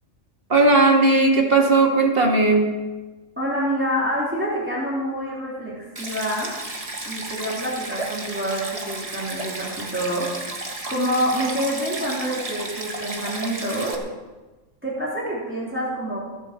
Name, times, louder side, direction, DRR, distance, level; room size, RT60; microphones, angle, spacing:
voice 1, 0.5-2.7, right 3 dB, 45° right, 2 dB, 2.0 m, -17 dB
voice 2, 3.4-6.5 7.0-14.0 14.8-16.2, equal, 10° right, -6 dB, 3.5 m, -27 dB
Stream, 6.0-14.0, right 2 dB, 25° right, 1.6 m, -33 dB
14.5 x 8.7 x 7.5 m, 1.2 s
omnidirectional pair, 1.4 m